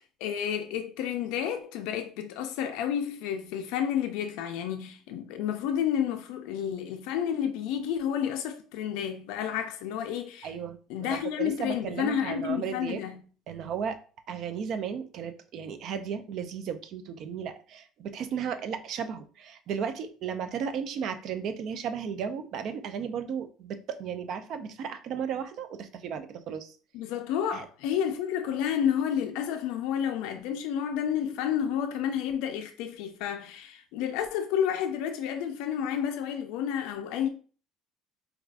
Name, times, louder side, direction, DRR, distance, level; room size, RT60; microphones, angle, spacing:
voice 1, 0.2-10.5 10.9-13.2 26.9-37.3, left 9 dB, 70° left, 0.4 m, -30 dB
voice 2, 10.4-13.0 13.5-14.0 14.3-26.7 27.5-27.6, right 7 dB, 40° right, 0.3 m, -35 dB
4.6 x 2.3 x 2.4 m
cardioid pair, 175°, 0 cm